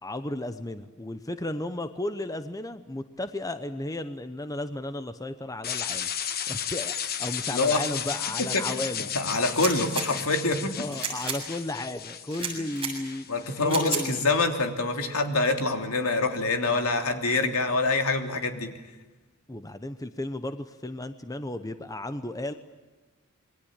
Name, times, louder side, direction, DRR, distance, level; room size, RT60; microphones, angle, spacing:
voice 1, 0.0-6.1 6.5-9.1 10.8-14.2 19.5-22.5, left 1 dB, 15° left, 10 dB, 0.9 m, -34 dB
sound 1, 5.6-13.7, left 9 dB, 45° left, 1.3 m, -34 dB
voice 2, 7.5-7.8 8.5-8.6 9.1-10.7 13.3-18.7, left 3 dB, 70° left, 5 dB, 3.1 m, -25 dB
sound 2, 9.5-10.1 10.9-11.4 12.3-12.9 13.7-14.0, right 6 dB, 25° right, 7.3 m, -32 dB
27.5 x 22.5 x 8.9 m, 1.2 s
head